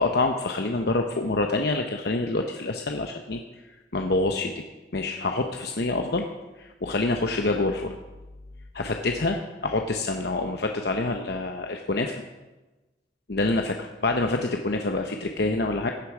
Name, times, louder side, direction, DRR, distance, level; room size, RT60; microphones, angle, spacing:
voice 1, 0.0-3.4 3.9-4.6 4.9-6.3 6.6-7.9 8.7-9.4 9.6-12.2 13.3-15.9, left 2 dB, 60° left, 4 dB, 0.8 m, -26 dB
16.0 x 9.8 x 4.9 m, 1.1 s
head